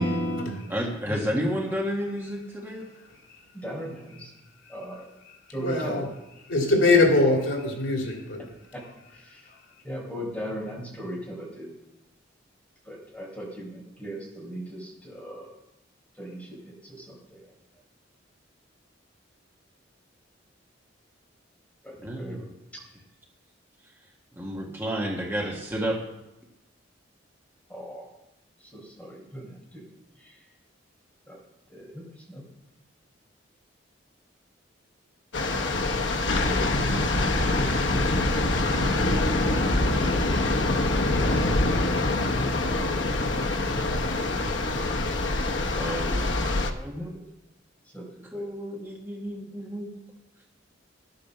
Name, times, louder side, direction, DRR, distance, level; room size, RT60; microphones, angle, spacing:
voice 1, 0.0-0.7 5.6-6.1 6.5-8.5 8.8-8.9, left 2 dB, 85° left, 2.7 m, -23 dB
voice 2, 0.7-2.9 22.0-22.4 24.4-26.0 45.8-46.3 46.7-47.1 48.3-49.9, equal, 10° right, 1.5 m, -31 dB
voice 3, 3.5-4.3 4.7-5.0 5.5-6.0 8.7-8.8 9.1-9.4 9.8-11.7 12.8-15.5 16.2-17.5 21.8-22.4 27.7-28.1 28.6-29.8 30.2-30.4 31.3-31.4 31.7-32.4 36.2-43.0 44.8-45.2 47.0-47.2 47.9-48.1 48.3-48.4, right 1 dB, 5° left, 4.3 m, -39 dB
sound 1, 35.3-46.7, left 2 dB, 70° left, 1.1 m, -25 dB
11.5 x 8.8 x 6.6 m
head